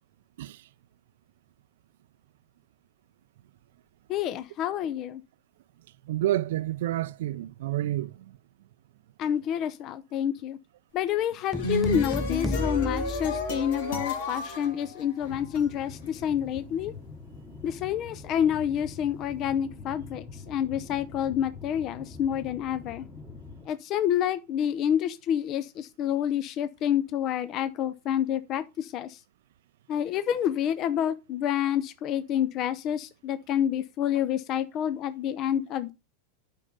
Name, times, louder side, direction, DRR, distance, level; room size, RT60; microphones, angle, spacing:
voice 1, 4.1-5.2 9.2-10.6 10.9-16.9 17.6-23.0 23.7-29.2 29.9-35.9, left 10 dB, 40° left, 0.5 m, -28 dB
voice 2, 6.1-8.1, right 14 dB, 75° right, 0.4 m, -29 dB
sound 1, 11.3-15.6, left 2 dB, 75° left, 2.8 m, -31 dB
sound 2, 11.5-14.1, equal, 5° right, 0.6 m, -33 dB
sound 3, 15.2-23.7, left 4 dB, 25° left, 2.5 m, -44 dB
9.0 x 5.4 x 3.8 m
hypercardioid pair, 120°, 0 cm